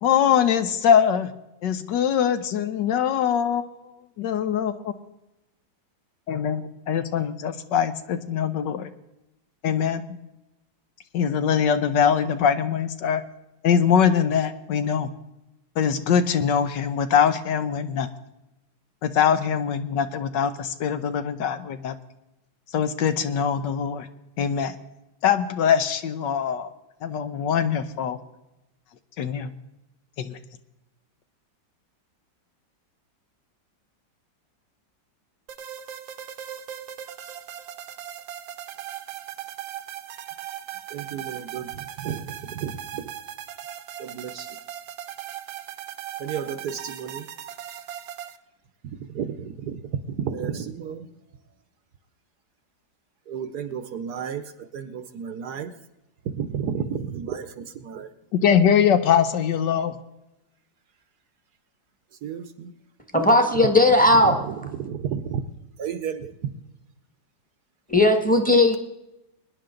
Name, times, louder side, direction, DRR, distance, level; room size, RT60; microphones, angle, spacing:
voice 1, 0.0-1.3 1.6-3.9 4.2-4.9 6.3-8.9 9.6-10.0 11.1-13.2 13.6-15.1 15.8-18.1 19.0-21.9 22.7-24.1 24.4-24.7 25.2-26.7 27.0-28.2 29.2-29.5 30.2-30.4 58.3-60.0, left 8 dB, 70° left, 10 dB, 1.4 m, -22 dB
sound 1, 35.5-48.4, right 11 dB, 80° right, 1.6 m, -38 dB
voice 2, 40.9-41.7 42.0-42.2 42.5-43.0 44.0-44.5 46.2-47.3 49.1-49.8 50.1-51.1 53.3-54.4 54.7-55.7 56.3-58.1 62.2-62.7 64.8-65.4 65.8-66.3, right 8 dB, 65° right, 11 dB, 1.2 m, -32 dB
voice 3, 63.1-64.6 67.9-68.8, left 1 dB, 5° left, 5 dB, 1.3 m, -17 dB
23.5 x 10.0 x 3.8 m, 0.92 s
omnidirectional pair, 2.0 m